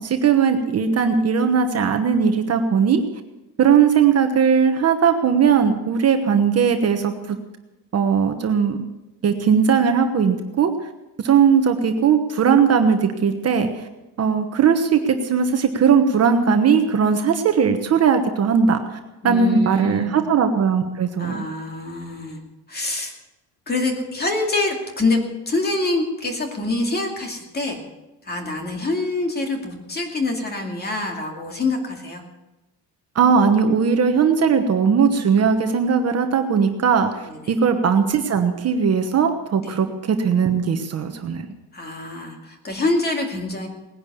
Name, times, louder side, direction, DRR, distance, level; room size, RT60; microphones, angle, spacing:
voice 1, 0.0-3.0 3.6-7.4 7.9-8.8 9.2-10.7 11.2-13.9 14.2-19.0 19.2-21.4 33.1-41.4, right 6 dB, 40° right, 6 dB, 1.2 m, -18 dB
voice 2, 19.2-20.1 21.2-22.4 22.7-23.1 23.7-25.2 25.5-27.8 28.2-32.2 37.3-37.5 39.6-39.8 41.7-43.7, left 2 dB, 25° left, 3 dB, 2.5 m, -25 dB
19.0 x 10.5 x 6.9 m, 1.0 s
cardioid pair, 170°, 40 cm